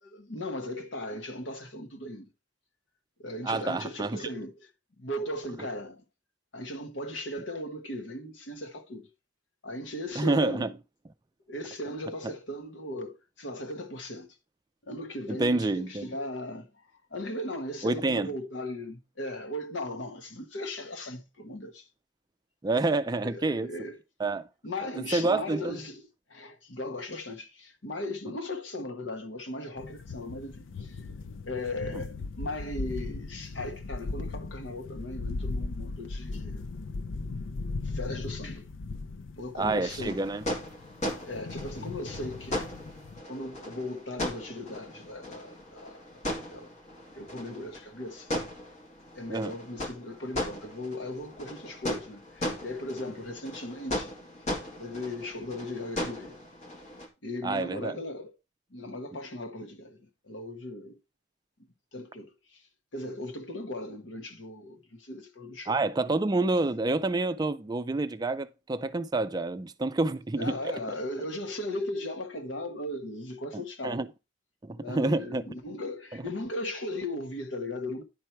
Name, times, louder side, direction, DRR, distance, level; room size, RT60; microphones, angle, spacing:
voice 1, 0.0-2.3 3.2-4.7 5.0-6.0 6.5-9.1 9.6-10.7 11.5-14.3 14.9-16.7 17.1-21.9 23.2-24.0 24.6-31.0 31.4-36.6 37.8-38.7 39.4-40.2 41.2-42.7 43.3-46.7 47.1-48.3 49.1-54.1 54.8-56.4 57.2-58.3 58.7-61.0 61.9-62.6 62.9-65.8 70.4-74.0 74.8-78.0, left 1 dB, 70° left, 1.2 m, -37 dB
voice 2, 3.4-4.2 10.2-10.7 15.3-16.1 17.8-18.3 22.6-23.7 24.2-24.4 25.1-25.8 39.6-40.4 41.0-41.1 49.3-49.5 57.4-58.0 65.7-70.7 73.5-74.1 74.6-75.4 76.1-76.2, right 2 dB, 20° right, 0.4 m, -28 dB
sound 1, 29.8-43.2, left 3 dB, 90° left, 0.5 m, -38 dB
sound 2, 39.9-57.1, left 1 dB, 40° left, 2.0 m, -37 dB
10.5 x 4.6 x 4.5 m
head